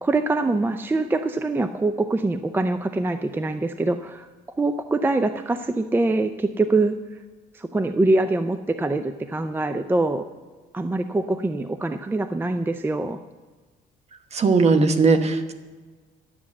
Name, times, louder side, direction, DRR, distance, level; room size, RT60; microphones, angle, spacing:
voice 1, 0.0-4.3 4.6-7.2 7.5-10.2 10.7-13.2, right 2 dB, 10° right, 10 dB, 0.4 m, -24 dB
voice 2, 14.3-15.5, right 4 dB, 40° right, 9 dB, 1.1 m, -18 dB
11.0 x 7.5 x 7.1 m, 1.4 s
cardioid pair, 110°, 17 cm